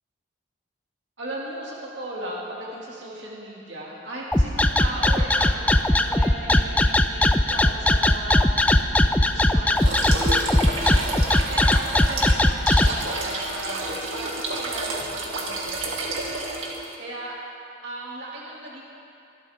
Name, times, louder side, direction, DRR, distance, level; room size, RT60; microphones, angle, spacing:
voice 1, 1.2-5.6 5.9-8.5 9.0-11.0 11.5-16.5 17.0-17.4 17.8-18.8, right 1 dB, 60° right, -5 dB, 2.6 m, -37 dB
sound 1, 4.3-12.9, left 1 dB, 5° left, 0.4 m, -19 dB
sound 2, 9.8-17.0, right 2 dB, 85° right, 2.2 m, -30 dB
24.0 x 13.5 x 3.7 m, 2.8 s
head